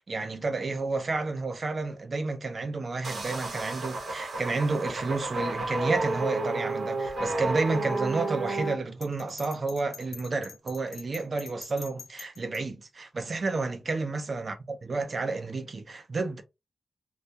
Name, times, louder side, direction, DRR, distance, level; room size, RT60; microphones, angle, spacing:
voice 1, 0.0-14.5 14.8-16.4, right 3 dB, 40° right, 0.5 m, -31 dB
sound 1, 3.0-8.7, right 2 dB, 70° right, 0.7 m, -31 dB
Bell, 9.0-12.6, left 6 dB, 90° left, 0.8 m, -45 dB
2.3 x 2.1 x 2.7 m
wide cardioid pair, 175°, 0 cm